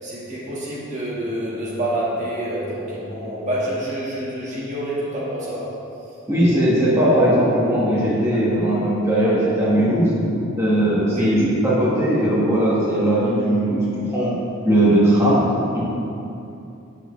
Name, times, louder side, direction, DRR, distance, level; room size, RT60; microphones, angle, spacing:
voice 1, 0.0-5.7 11.1-11.3, right 1 dB, 35° right, -7 dB, 1.7 m, -27 dB
voice 2, 6.3-10.1 10.6-13.8 14.1-14.3 14.6-15.4 15.7-15.8, right 1 dB, 15° right, -9 dB, 1.7 m, -18 dB
9.5 x 7.3 x 3.3 m, 2.8 s
head